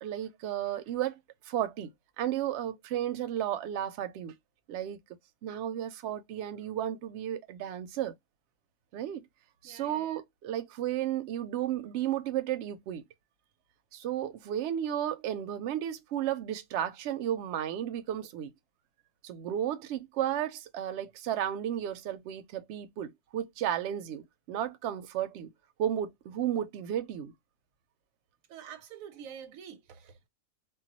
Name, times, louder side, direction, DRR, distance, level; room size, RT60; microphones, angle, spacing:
voice 1, 0.0-1.2 1.4-4.3 4.7-5.0 5.4-8.1 8.9-9.3 9.6-13.0 13.9-18.5 19.2-25.5 25.8-27.3, right 11 dB, 65° right, 0.7 m, -33 dB
voice 2, 9.6-10.2 28.5-30.3, right 8 dB, 85° right, 1.0 m, -47 dB
2.3 x 2.2 x 3.9 m
omnidirectional pair, 1.4 m